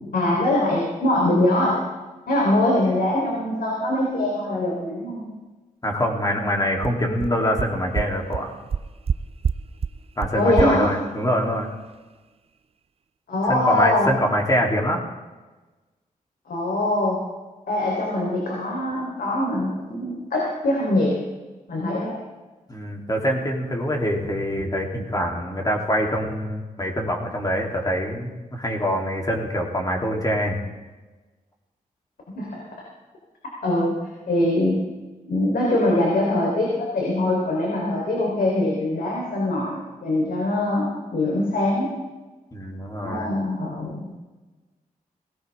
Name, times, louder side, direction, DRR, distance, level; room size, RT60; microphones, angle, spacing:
voice 1, 0.0-1.9 2.3-5.3 10.3-10.9 13.3-14.1 16.5-17.2 17.7-21.2 21.7-22.2 32.3-32.6 33.6-34.0 34.3-34.8 35.3-41.9 43.0-44.1, left 1 dB, 80° left, -3 dB, 3.7 m, -23 dB
voice 2, 5.8-8.6 10.2-11.7 13.5-15.0 22.7-30.6 42.5-43.3, equal, 25° left, 0 dB, 3.1 m, -24 dB
sound 1, 6.5-6.6 6.8-6.9 7.2-7.3 7.6-7.7 7.9-8.0 8.3-8.4 8.7-9.1 9.4-9.5 9.8-9.9 10.2-10.3 10.6-10.7, right 6 dB, 40° right, 0.5 m, -23 dB
18.5 x 17.5 x 3.6 m, 1.2 s
cardioid pair, 85°, 15 cm